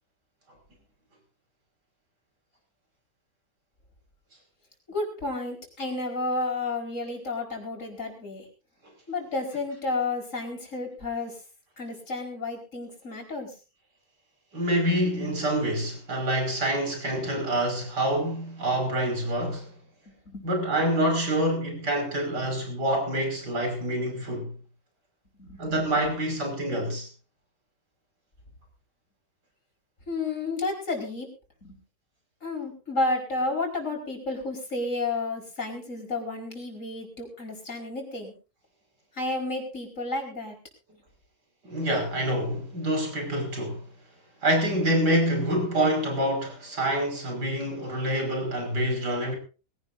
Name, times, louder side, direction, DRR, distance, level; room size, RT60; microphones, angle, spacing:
voice 1, 4.9-8.5 9.1-11.4 11.8-13.5 20.2-20.4 25.4-25.8 30.1-31.3 31.6-31.8 32.4-38.3 39.1-40.6, left 2 dB, 50° left, 5.1 m, -31 dB
voice 2, 14.5-19.7 20.4-24.5 25.6-27.1 41.6-43.8 44.4-49.4, right 1 dB, 85° right, 6.1 m, -26 dB
23.0 x 17.5 x 2.6 m
omnidirectional pair, 1.7 m